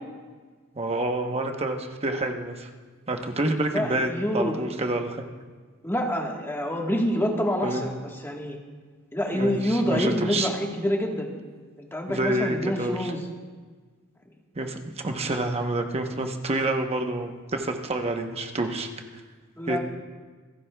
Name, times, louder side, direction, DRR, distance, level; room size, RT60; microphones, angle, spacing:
voice 1, 0.7-2.7 3.1-5.2 7.6-7.9 9.3-10.5 12.1-13.1 14.5-18.9 19.7-19.8, right 2 dB, 30° right, 4 dB, 0.9 m, -28 dB
voice 2, 3.7-4.6 5.8-8.6 9.1-11.3 11.8-13.3 19.6-19.8, equal, 10° left, 0 dB, 1.3 m, -27 dB
27.0 x 10.5 x 2.3 m, 1.5 s
head